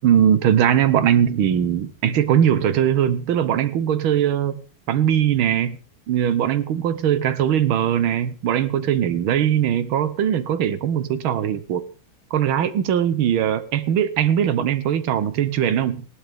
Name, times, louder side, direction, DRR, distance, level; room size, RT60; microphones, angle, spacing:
voice 1, 0.0-4.6 4.9-5.8 6.1-11.9 12.3-16.1, right 9 dB, 75° right, 14 dB, 1.8 m, -20 dB
17.5 x 11.5 x 3.5 m, 0.35 s
omnidirectional pair, 2.3 m